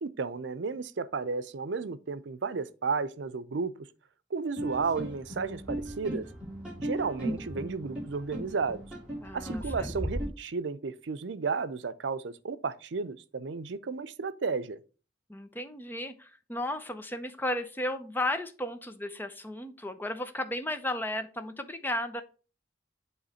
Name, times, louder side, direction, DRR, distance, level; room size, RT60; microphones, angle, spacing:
voice 1, 0.0-3.7 4.3-6.3 6.8-8.8 9.3-14.8, right 4 dB, 85° right, 0.5 m, -33 dB
sound 1, 4.6-10.3, right 1 dB, 5° right, 3.3 m, -37 dB
voice 2, 9.2-9.9 15.3-22.2, left 1 dB, 10° left, 0.7 m, -34 dB
7.8 x 3.2 x 5.5 m
head